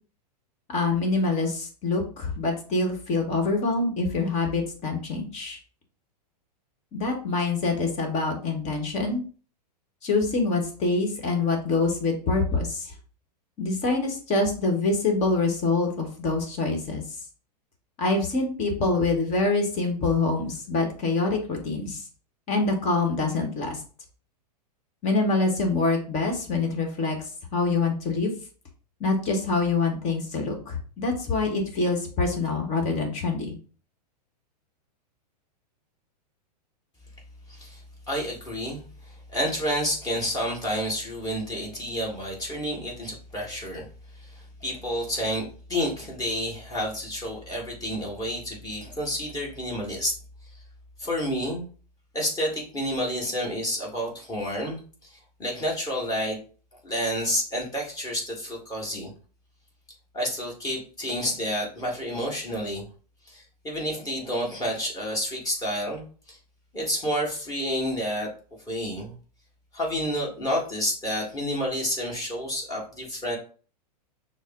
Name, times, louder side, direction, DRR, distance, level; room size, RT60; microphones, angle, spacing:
voice 1, 0.7-5.6 6.9-9.2 10.0-12.9 13.6-17.0 18.0-22.0 22.5-23.8 25.0-27.2 27.5-28.3 29.0-33.5, left 3 dB, 35° left, 3 dB, 1.4 m, -25 dB
voice 2, 37.5-43.9 44.2-50.1 51.0-51.6 52.1-56.4 56.8-59.1 60.1-62.9 63.3-66.4 66.7-68.3 68.7-69.1 69.7-73.4, equal, 15° left, -3 dB, 1.8 m, -30 dB
6.2 x 2.1 x 3.7 m, 0.40 s
hypercardioid pair, 125°, 21 cm